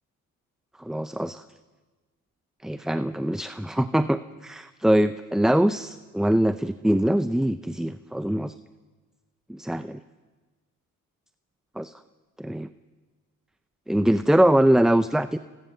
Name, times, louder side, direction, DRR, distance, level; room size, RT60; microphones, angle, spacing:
voice 1, 0.8-1.4 2.6-8.5 9.5-10.0 11.8-11.9 12.4-12.7 13.9-15.4, right 1 dB, ahead, 11 dB, 0.7 m, -23 dB
29.5 x 19.5 x 6.8 m, 1.3 s
supercardioid pair, 60°, 35 cm